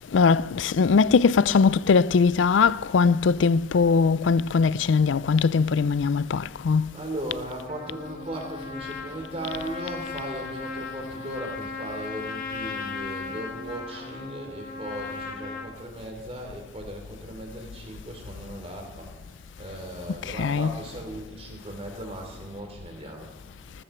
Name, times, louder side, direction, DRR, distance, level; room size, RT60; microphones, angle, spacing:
voice 1, 0.1-6.9 20.3-20.7, left 5 dB, 90° left, 0.4 m, -21 dB
voice 2, 6.9-19.1 19.6-23.3, right 1 dB, 35° right, 3.2 m, -37 dB
Trumpet, 7.7-15.7, left 4 dB, 50° left, 1.4 m, -37 dB
19.5 x 14.5 x 4.4 m
head